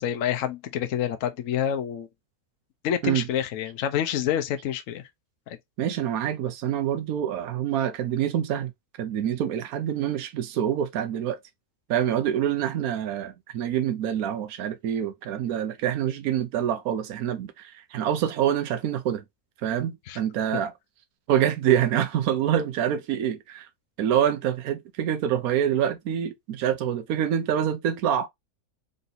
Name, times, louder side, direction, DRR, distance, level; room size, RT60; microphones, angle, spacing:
voice 1, 0.0-2.1 2.8-5.0 5.5-5.6 20.1-20.2 20.5-20.6, left 9 dB, 65° left, 1.0 m, -27 dB
voice 2, 5.8-8.7 9.0-11.4 11.9-19.2 19.6-20.7 21.3-23.7 24.0-28.3, right 10 dB, 80° right, 1.2 m, -26 dB
3.9 x 2.6 x 4.0 m
omnidirectional pair, 1.5 m